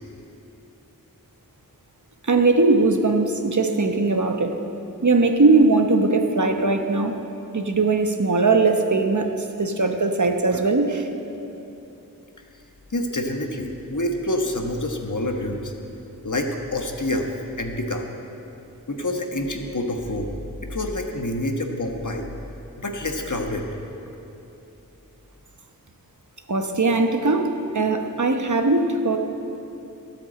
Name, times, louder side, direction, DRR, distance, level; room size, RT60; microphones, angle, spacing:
voice 1, 2.2-4.6 5.0-7.2 7.5-11.1 26.5-29.2, right 3 dB, 55° right, 5 dB, 1.0 m, -20 dB
voice 2, 12.9-15.7 16.2-17.3 17.6-18.1 18.9-20.3 20.6-22.2 22.8-23.7, left 1 dB, 60° left, 3 dB, 1.4 m, -27 dB
13.0 x 8.4 x 7.6 m, 2.9 s
wide cardioid pair, 45°, 35 cm